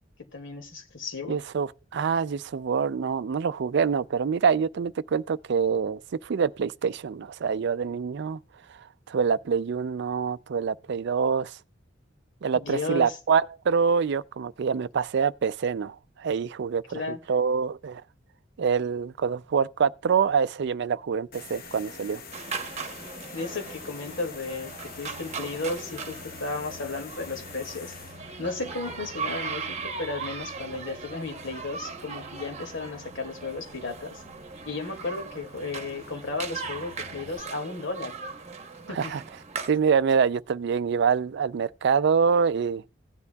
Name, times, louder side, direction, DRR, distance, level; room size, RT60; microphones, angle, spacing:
voice 1, 0.3-1.4 12.5-13.2 16.9-17.2 23.3-28.0 28.4-34.2 34.7-38.1 38.9-39.1, left 3 dB, 75° left, 2.2 m, -34 dB
voice 2, 1.3-8.4 9.1-11.6 12.4-18.0 18.6-22.2 38.9-39.2 39.7-42.8, right 6 dB, 60° right, 0.4 m, -25 dB
sound 1, 21.3-37.4, left 5 dB, 50° left, 1.0 m, -47 dB
sound 2, 22.3-39.7, right 5 dB, 35° right, 0.9 m, -39 dB
16.5 x 9.6 x 2.3 m
head